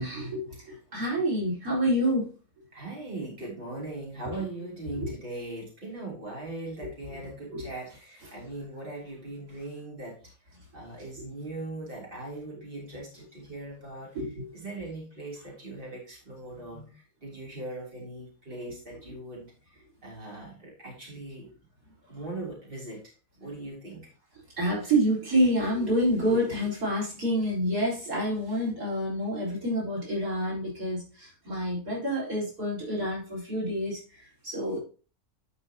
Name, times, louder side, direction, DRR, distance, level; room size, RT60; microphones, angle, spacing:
voice 1, 0.0-2.3 4.2-4.3 5.0-5.1 7.5-7.7 8.2-8.3 14.1-14.5 24.6-34.8, equal, 90° right, -5 dB, 4.9 m, -28 dB
voice 2, 2.7-10.2 10.7-14.2 14.5-21.5 22.1-23.0 23.4-24.1, right 2 dB, 35° right, -3 dB, 3.4 m, -40 dB
10.5 x 5.5 x 2.9 m, 0.36 s
omnidirectional pair, 1.6 m